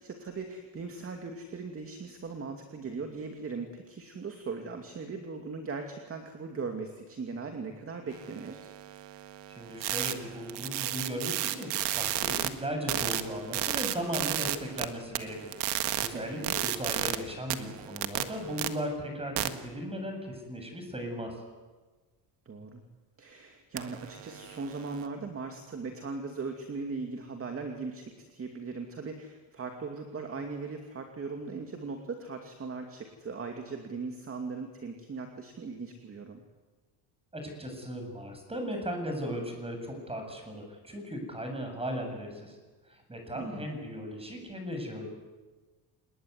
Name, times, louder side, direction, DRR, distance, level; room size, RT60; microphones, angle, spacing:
voice 1, 0.0-8.7 16.1-16.5 22.5-22.8 23.2-36.4 43.3-43.7, right 4 dB, 35° right, 4 dB, 2.7 m, -39 dB
sound 1, 8.1-12.5 12.9-14.8 15.1-17.2 17.5-18.7 19.4-19.5 23.8-25.1, right 14 dB, 90° right, 1.7 m, -33 dB
voice 2, 9.5-15.5 16.0-21.4 37.3-42.6 42.9-45.1, equal, 15° right, 4 dB, 7.7 m, -37 dB
27.5 x 21.0 x 9.6 m, 1.3 s
cardioid pair, 120°, 41 cm